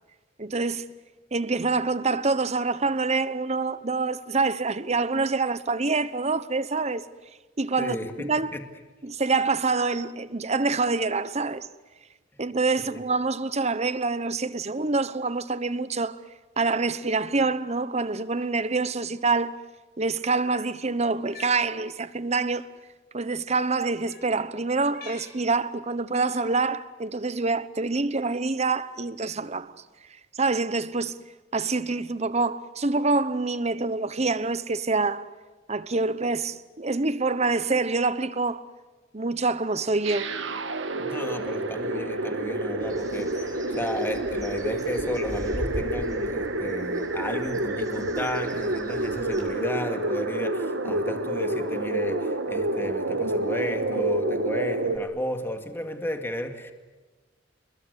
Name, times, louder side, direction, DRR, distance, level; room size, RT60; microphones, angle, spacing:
voice 1, 0.4-0.9 1.3-7.0 7.6-8.6 9.0-11.7 12.4-16.2 16.6-19.6 20.0-22.6 23.1-29.7 30.3-31.2 31.5-35.3 35.7-38.7 39.1-40.3, right 3 dB, 35° right, 1.0 m, -26 dB
voice 2, 7.8-8.1 8.5-8.6 12.8-13.0 41.0-56.7, equal, 10° left, 2.2 m, -33 dB
Cat, 21.1-21.6 22.7-22.8 24.0-24.3 24.9-25.4 26.3-26.7, left 5 dB, 55° left, 5.3 m, -46 dB
sound 1, 40.0-55.0, right 2 dB, 90° right, 2.0 m, -28 dB
Bird, 42.8-49.4, equal, 20° right, 6.7 m, -40 dB
28.5 x 21.5 x 8.2 m
head